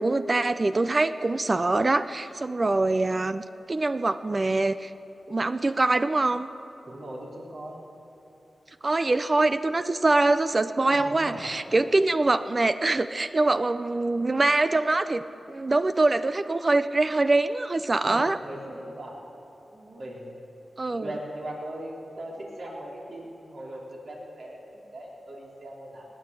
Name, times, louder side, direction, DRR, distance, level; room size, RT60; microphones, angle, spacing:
voice 1, 0.0-4.9 5.3-6.5 8.8-18.4 20.8-21.1, right 2 dB, 45° right, 11 dB, 0.5 m, -24 dB
voice 2, 6.8-7.8 10.9-11.5 18.0-19.2 19.7-20.3 20.9-26.1, right 1 dB, 70° right, -3 dB, 3.5 m, -39 dB
18.5 x 8.5 x 8.3 m, 2.8 s
cardioid pair, 45°, 0 cm